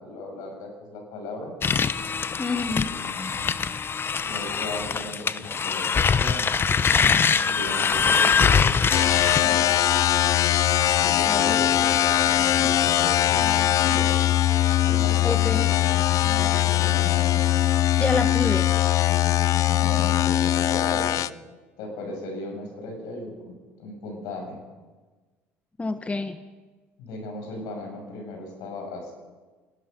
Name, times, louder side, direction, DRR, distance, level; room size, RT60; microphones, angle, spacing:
voice 1, 0.0-1.5 2.6-3.4 4.2-6.5 7.3-9.8 11.0-14.2 14.8-15.9 16.2-17.4 19.7-21.2 21.8-23.5 23.8-24.6 27.0-29.1, left 1 dB, 70° left, 2 dB, 6.9 m, -37 dB
sound 1, 1.6-9.4, left 6 dB, 35° left, 0.9 m, -23 dB
voice 2, 2.4-2.9 11.3-11.6 15.2-15.6 18.0-18.7 25.8-26.4, left 3 dB, 20° left, 9 dB, 1.3 m, -27 dB
sound 2, 8.9-21.3, left 12 dB, 55° left, 0.6 m, -21 dB
26.0 x 19.0 x 5.4 m, 1.3 s
hypercardioid pair, 65°, 7 cm